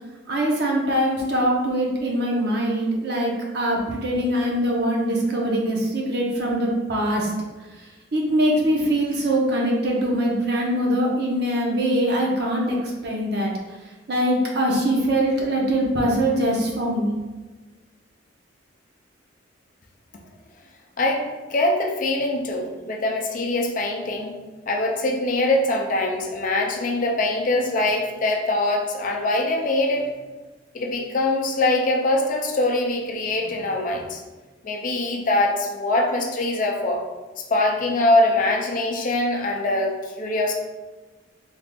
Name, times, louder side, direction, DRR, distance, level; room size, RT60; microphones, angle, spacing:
voice 1, 0.3-7.3 7.8-7.9 8.1-13.5 14.1-17.1, right 1 dB, 55° right, -2 dB, 0.8 m, -22 dB
voice 2, 21.0-24.4 24.7-30.1 30.7-34.2 34.6-37.0 37.5-40.5, left 2 dB, 45° left, 2 dB, 0.4 m, -23 dB
3.5 x 2.4 x 3.6 m, 1.3 s
head